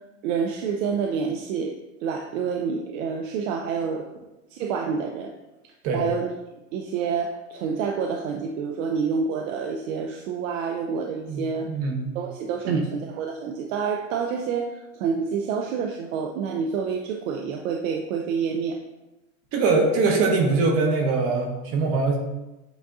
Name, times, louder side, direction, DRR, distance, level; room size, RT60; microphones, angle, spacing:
voice 1, 0.2-1.8 2.0-4.1 4.5-5.3 5.9-6.3 6.7-11.7 12.2-18.8, right 6 dB, 70° right, 3 dB, 0.5 m, -28 dB
voice 2, 11.3-12.1 12.7-12.9 19.5-22.2, right 3 dB, 35° right, 2 dB, 0.8 m, -22 dB
7.9 x 2.7 x 2.3 m, 1.0 s
supercardioid pair, 135°, 41 cm